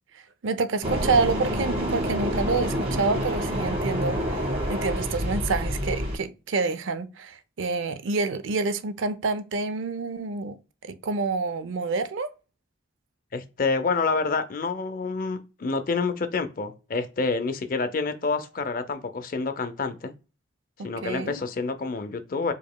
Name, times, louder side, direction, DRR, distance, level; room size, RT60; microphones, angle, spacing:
voice 1, 0.4-10.6 10.8-12.3 20.8-21.4, right 4 dB, 80° right, 0.5 m, -28 dB
sound 1, 0.8-6.2, equal, 30° right, 1.4 m, -27 dB
voice 2, 13.3-20.1 20.8-22.5, left 4 dB, 45° left, 0.5 m, -28 dB
4.9 x 2.9 x 2.2 m
head